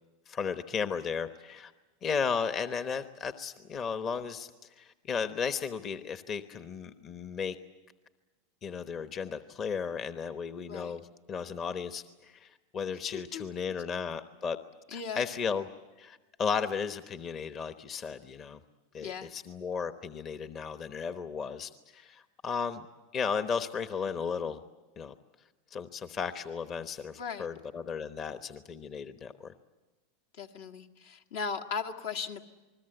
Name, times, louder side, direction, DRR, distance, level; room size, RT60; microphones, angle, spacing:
voice 1, 0.3-1.7 2.0-7.6 8.6-11.0 11.3-14.6 14.9-15.7 16.0-18.6 18.9-22.8 23.1-24.6 25.0-25.1 25.7-29.5, left 6 dB, 35° left, 10 dB, 1.0 m, -35 dB
voice 2, 13.1-13.4 14.9-15.3 19.0-19.3 27.2-27.5 30.4-32.4, left 5 dB, 70° left, 6 dB, 1.8 m, -37 dB
28.5 x 20.5 x 7.9 m, 1.2 s
supercardioid pair, 125°, 0 cm